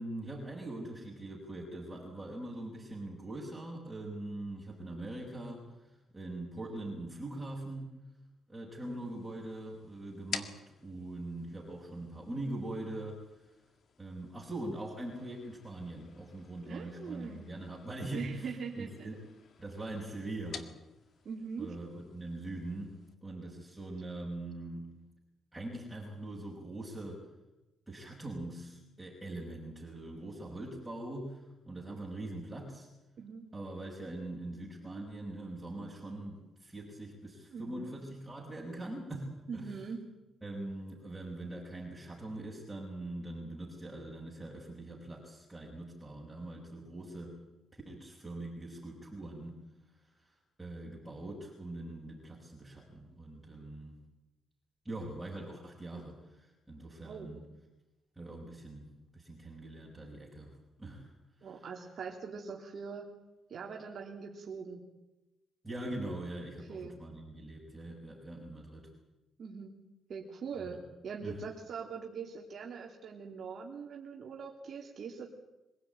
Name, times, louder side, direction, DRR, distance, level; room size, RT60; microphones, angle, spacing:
voice 1, 0.0-5.7 6.1-7.9 8.5-13.2 14.0-19.2 19.6-20.7 21.6-22.9 23.2-24.9 25.5-27.2 27.9-32.9 33.5-39.7 40.4-47.4 47.7-49.6 50.2-50.3 50.6-54.0 54.9-57.5 58.2-61.1 61.4-61.6 65.6-68.9 70.6-70.8 71.2-71.4, right 1 dB, 10° right, -3 dB, 5.4 m, -42 dB
sound 1, 8.8-23.1, left 6 dB, 55° left, 2.0 m, -51 dB
voice 2, 16.7-17.5 18.1-19.1 21.2-21.7 33.2-33.5 37.5-38.0 39.5-40.0 57.0-57.3 61.4-63.1 63.5-64.8 66.7-67.0 69.4-69.7 70.1-70.8 71.0-75.3, right 5 dB, 55° right, 0 dB, 3.0 m, -42 dB
25.0 x 16.5 x 9.2 m, 1.0 s
cardioid pair, 90°, 0 cm